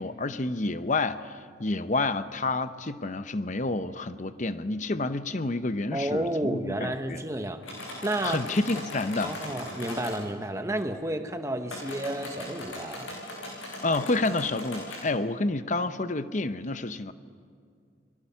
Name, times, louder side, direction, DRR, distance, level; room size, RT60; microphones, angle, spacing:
voice 1, 0.0-7.2 8.2-9.3 13.8-17.1, left 2 dB, 40° left, 11 dB, 0.8 m, -29 dB
voice 2, 5.9-7.6 8.0-8.4 9.2-13.1, right 1 dB, 15° right, 6 dB, 1.2 m, -31 dB
sound 1, 7.6-10.2 11.6-15.0, left 1 dB, 85° left, 7.5 m, -39 dB
29.0 x 22.5 x 5.8 m, 2.2 s
head